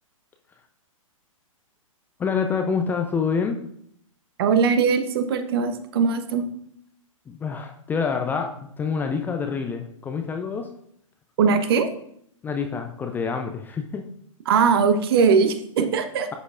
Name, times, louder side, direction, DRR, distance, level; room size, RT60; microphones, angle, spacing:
voice 1, 2.2-3.6 7.3-10.7 12.4-14.1, left 5 dB, 10° left, 5 dB, 0.5 m, -27 dB
voice 2, 4.4-6.5 11.4-11.9 14.4-16.3, right 5 dB, 45° right, 9 dB, 1.1 m, -20 dB
11.5 x 8.2 x 2.5 m, 0.70 s
figure-of-eight pair, 115°, 18 cm